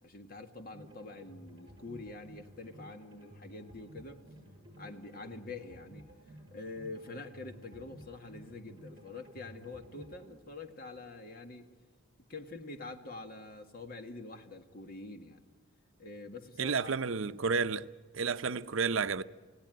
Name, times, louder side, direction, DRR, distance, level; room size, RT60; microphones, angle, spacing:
voice 1, 0.0-4.2 4.8-6.0 6.5-11.7 12.3-15.4 16.0-17.4, left 3 dB, 45° left, 1.8 m, -46 dB
sound 1, 0.7-10.3, equal, 20° right, 6.5 m, -54 dB
voice 2, 16.6-17.9 18.1-19.2, right 5 dB, 65° right, 0.6 m, -31 dB
27.0 x 17.5 x 9.1 m
head